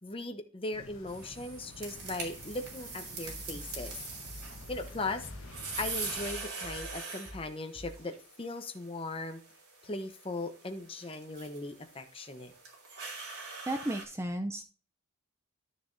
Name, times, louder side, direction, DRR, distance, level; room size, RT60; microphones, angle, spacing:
voice 1, 0.0-4.0 4.7-5.3 5.8-9.4 9.8-12.5, left 2 dB, 25° left, 7 dB, 0.9 m, -38 dB
sound 1, 0.7-6.2, left 2 dB, 60° left, 1.3 m, -50 dB
sound 2, 1.1-14.0, right 4 dB, 90° right, 3.1 m, -43 dB
sound 3, 3.2-8.2, left 1 dB, 30° right, 2.1 m, -48 dB
voice 2, 13.7-14.6, right 1 dB, 10° right, 6 dB, 0.4 m, -33 dB
12.5 x 6.7 x 2.7 m, 0.38 s
head